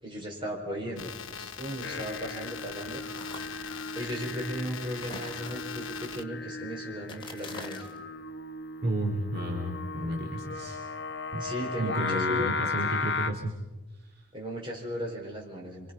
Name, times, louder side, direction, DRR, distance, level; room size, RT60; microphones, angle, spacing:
voice 1, 0.0-3.0 3.9-7.9 11.4-12.5 14.3-15.9, equal, 25° right, -1 dB, 5.2 m, -36 dB
sound 1, 1.0-6.2, left 7 dB, 80° left, 1.1 m, -42 dB
Singing, 1.8-13.3, left 4 dB, 55° left, 1.0 m, -36 dB
sound 2, 3.1-3.8 5.0-6.0 7.0-8.0, left 3 dB, 25° left, 2.6 m, -44 dB
voice 2, 8.8-10.8 11.3-11.5 11.8-13.5 14.0-14.2, right 1 dB, 50° right, 1 dB, 2.6 m, -32 dB
27.0 x 25.0 x 5.5 m, 1.1 s
head